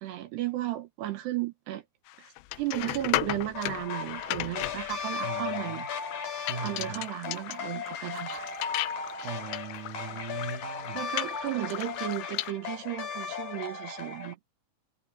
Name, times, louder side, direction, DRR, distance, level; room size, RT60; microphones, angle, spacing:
voice 1, 0.0-1.8 2.2-5.9 6.6-8.5 10.9-14.4, right 14 dB, 75° right, 3.2 m, -34 dB
sound 1, 2.1-12.5, left 18 dB, 85° left, 3.0 m, -36 dB
sound 2, 3.5-14.3, left 6 dB, 55° left, 4.5 m, -37 dB
voice 2, 5.2-5.9 6.5-7.1 9.2-11.0, right 5 dB, 55° right, 2.6 m, -39 dB
omnidirectional pair, 5.1 m